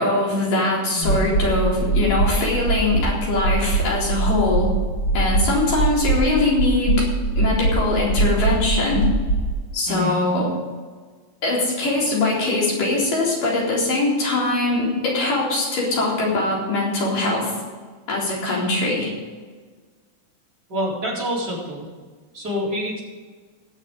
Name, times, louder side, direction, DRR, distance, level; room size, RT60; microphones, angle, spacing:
voice 1, 0.0-4.7 5.1-7.0 7.4-9.1 9.7-10.5 11.4-17.5 18.1-19.1, left 2 dB, 65° left, -4 dB, 5.6 m, -22 dB
voice 2, 0.9-1.3 9.9-10.2 20.7-21.8 22.3-23.0, equal, 30° right, -5 dB, 4.4 m, -27 dB
sound 1, 1.0-9.5, right 3 dB, 40° left, 1.9 m, -22 dB
20.0 x 7.3 x 4.9 m, 1.5 s
omnidirectional pair, 4.1 m